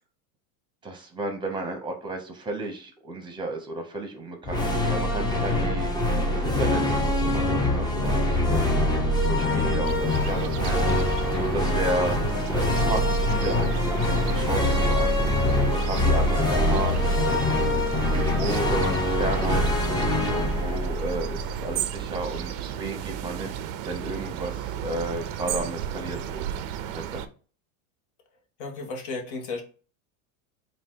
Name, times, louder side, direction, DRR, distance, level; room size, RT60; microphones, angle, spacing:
voice 1, 0.8-5.9 6.3-8.8 9.2-12.2 12.5-26.4 26.9-27.2, right 2 dB, 10° right, 3 dB, 0.9 m, -33 dB
sound 1, 4.4-21.9, left 1 dB, 10° left, 0.6 m, -24 dB
sound 2, 9.8-27.3, right 10 dB, 50° right, 0.5 m, -34 dB
voice 2, 28.6-29.6, left 3 dB, 55° left, 3 dB, 1.3 m, -33 dB
4.0 x 2.5 x 3.7 m, 0.38 s
supercardioid pair, 135°, 42 cm